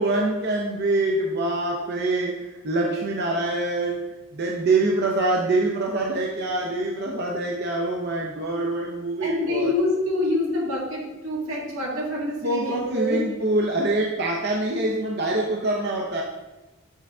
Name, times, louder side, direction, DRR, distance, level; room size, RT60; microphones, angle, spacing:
voice 1, 0.0-9.7 12.4-16.2, right 2 dB, 55° right, -1 dB, 0.7 m, -25 dB
voice 2, 9.2-13.4, left 2 dB, 90° right, -3 dB, 1.9 m, -26 dB
8.2 x 3.5 x 3.7 m, 1.1 s
head